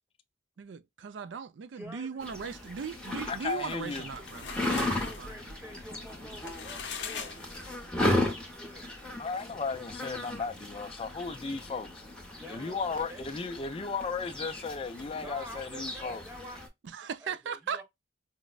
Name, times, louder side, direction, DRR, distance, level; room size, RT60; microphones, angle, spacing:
voice 1, 0.6-5.3 16.8-17.8, right 6 dB, 70° right, 0.4 m, -38 dB
voice 2, 1.7-2.3 4.8-8.9 12.4-13.2 15.1-16.6 17.2-17.8, equal, 10° right, 1.1 m, -48 dB
sound 1, 2.2-16.7, left 1 dB, 5° left, 0.8 m, -36 dB
voice 3, 3.3-4.0 9.2-12.0 12.5-16.2, left 4 dB, 30° left, 0.4 m, -35 dB
sound 2, 3.8-8.0, left 5 dB, 70° left, 0.7 m, -41 dB
5.0 x 2.1 x 2.3 m
head